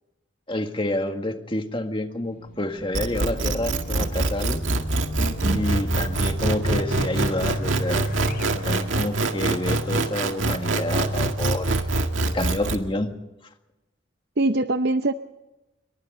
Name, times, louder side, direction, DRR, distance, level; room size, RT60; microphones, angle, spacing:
voice 1, 0.5-4.6 5.5-8.1 8.5-11.8 12.3-13.1, left 1 dB, 25° left, 5 dB, 1.8 m, -28 dB
Race car auto racing / Alarm, 2.2-8.5, equal, 50° left, 3.4 m, -37 dB
sound 1, 2.9-12.8, right 2 dB, 80° right, 2.0 m, -24 dB
voice 2, 5.2-5.6 14.4-15.1, right 2 dB, 55° right, 9 dB, 0.7 m, -24 dB
29.0 x 24.0 x 3.9 m, 1.0 s
head